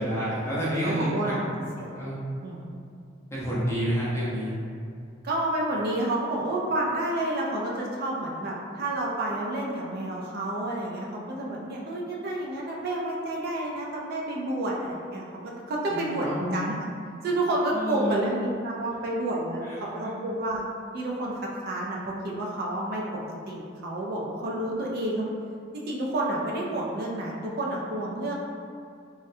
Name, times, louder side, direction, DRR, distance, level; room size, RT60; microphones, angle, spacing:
voice 1, 0.0-1.5 1.9-2.2 3.3-4.5 15.9-16.6 17.7-18.1 19.7-19.8 20.0-20.1, equal, 15° left, -9 dB, 0.7 m, -29 dB
voice 2, 0.6-1.4 1.8-1.9 2.4-2.6 5.2-16.9 17.2-20.6 20.9-23.1 23.5-25.3 25.7-28.3, right 1 dB, 50° right, -3 dB, 0.4 m, -30 dB
3.5 x 2.1 x 2.6 m, 2.3 s
head